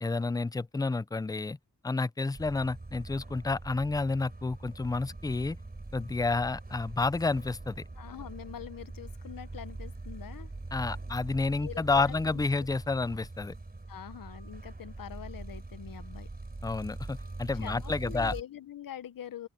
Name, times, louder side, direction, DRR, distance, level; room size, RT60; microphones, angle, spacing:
voice 1, 0.0-1.6 1.8-5.6 5.9-7.8 10.7-13.5 16.6-18.3, left 3 dB, 10° left, 0.3 m, -30 dB
sound 1, 2.3-18.4, right 2 dB, 30° right, 3.5 m, -43 dB
voice 2, 8.0-10.5 11.6-12.4 13.9-16.3 17.6-19.5, left 10 dB, 75° left, 0.8 m, -44 dB
open air
wide cardioid pair, 105°, 34 cm